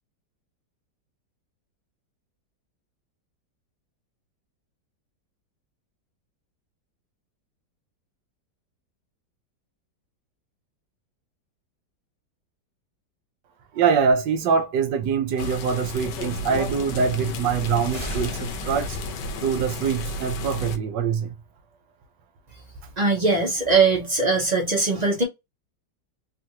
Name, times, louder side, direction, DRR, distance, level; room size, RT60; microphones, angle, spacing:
voice 1, 13.7-19.0 19.4-21.3, right 6 dB, 80° right, 1.3 m, -24 dB
sound 1, 15.4-20.8, left 2 dB, 80° left, 1.3 m, -32 dB
sound 2, 17.4-19.1, left 1 dB, 20° right, 1.0 m, -37 dB
voice 2, 23.0-25.2, right 4 dB, 35° right, 0.7 m, -21 dB
3.3 x 2.5 x 2.8 m
omnidirectional pair, 1.9 m